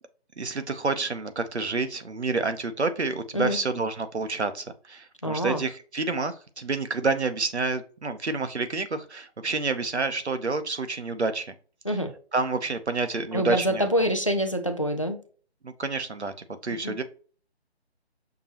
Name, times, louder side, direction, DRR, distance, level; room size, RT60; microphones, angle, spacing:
voice 1, 0.4-11.5 12.3-13.9 15.6-16.3 16.6-17.0, right 3 dB, 85° right, 0.8 m, -28 dB
voice 2, 5.2-5.6 11.8-12.1 13.3-15.2 16.8-17.0, equal, 30° left, 0.4 m, -26 dB
5.9 x 3.0 x 2.9 m
figure-of-eight pair, 150°, 33 cm